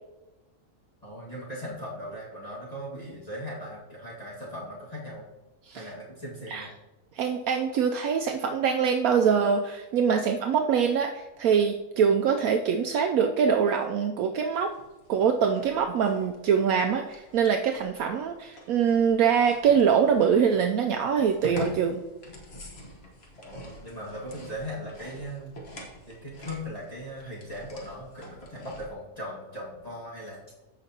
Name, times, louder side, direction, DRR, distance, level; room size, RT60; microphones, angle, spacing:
voice 1, 1.0-5.2 5.7-6.7 23.4-25.5 26.1-30.4, equal, 25° left, -7 dB, 1.7 m, -39 dB
voice 2, 7.2-14.7 15.1-22.0, right 7 dB, 75° right, 4 dB, 1.0 m, -24 dB
sound 1, 14.6-28.9, left 1 dB, 45° left, 1.4 m, -45 dB
14.0 x 5.0 x 2.8 m, 1.1 s
omnidirectional pair, 1.6 m